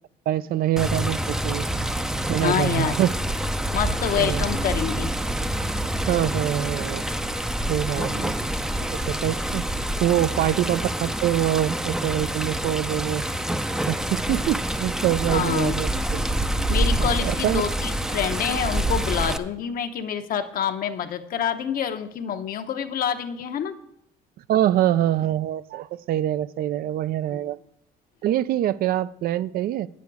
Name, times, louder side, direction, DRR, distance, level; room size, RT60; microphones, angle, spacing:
voice 1, 0.3-1.7 2.3-3.1 4.2-4.5 6.1-7.0 7.7-8.4 8.9-9.6 10.0-13.2 13.9-16.2 17.0-17.6 24.5-27.6 28.2-29.9, right 12 dB, 60° right, 16 dB, 0.4 m, -24 dB
Water, 0.8-19.4, right 1 dB, 5° right, 0.5 m, -27 dB
voice 2, 2.4-2.9 3.7-5.1 7.9-8.3 15.3-15.8 16.7-23.7 27.3-27.4, left 8 dB, 60° left, 8 dB, 0.9 m, -27 dB
9.5 x 8.3 x 4.7 m, 0.76 s
cardioid pair, 110°, 17 cm